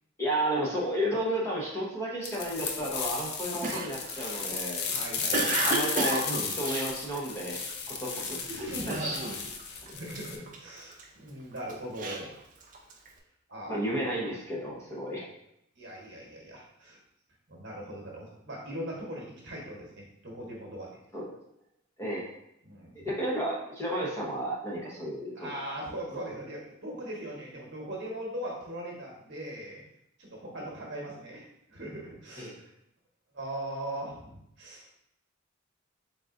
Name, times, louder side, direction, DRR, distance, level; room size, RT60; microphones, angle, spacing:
voice 1, 0.2-4.9 5.6-9.2 13.7-15.3 21.1-21.3 22.0-22.2 22.9-25.5 30.6-30.7 32.4-32.5, right 1 dB, 15° left, -5 dB, 0.9 m, -32 dB
sound 1, 2.2-10.4, left 5 dB, 55° left, 0.5 m, -34 dB
Cough, 3.6-7.7 8.2-8.5 8.9-9.6 9.9-11.0 11.6-13.1, right 3 dB, 40° right, 0.5 m, -32 dB
voice 2, 4.9-5.6 7.9-8.0 8.5-9.0 9.9-12.4 13.5-13.8 15.8-17.0 17.5-20.9 22.6-22.9 25.4-29.8 30.2-32.7 33.3-34.9, right 1 dB, 60° right, -2 dB, 1.1 m, -40 dB
3.9 x 3.6 x 2.5 m, 0.77 s
head